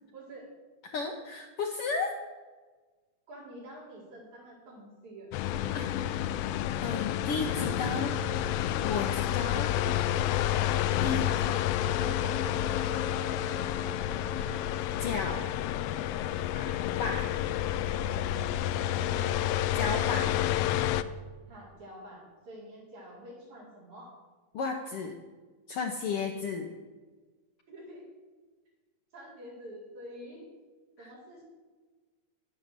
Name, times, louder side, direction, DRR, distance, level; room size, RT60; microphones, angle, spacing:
voice 1, 0.1-0.6 3.3-5.3 9.7-10.1 10.6-10.8 11.2-14.6 16.5-17.2 18.9-19.4 21.5-24.1 27.7-28.1 29.1-30.4 31.0-31.4, right 1 dB, 75° right, -5 dB, 5.5 m, -47 dB
voice 2, 0.8-2.2 5.7-6.3 6.8-8.1 8.8-9.7 11.0-11.3 15.0-15.5 17.0-17.2 19.7-20.4 24.5-25.1 25.7-26.7 31.0-31.1, left 4 dB, 65° left, 3 dB, 1.5 m, -33 dB
sound 1, 5.3-21.0, left 12 dB, 90° left, 1.4 m, -29 dB
sound 2, 7.3-9.5, right 5 dB, 55° right, 2.0 m, -44 dB
11.0 x 9.5 x 6.6 m, 1.3 s
omnidirectional pair, 3.4 m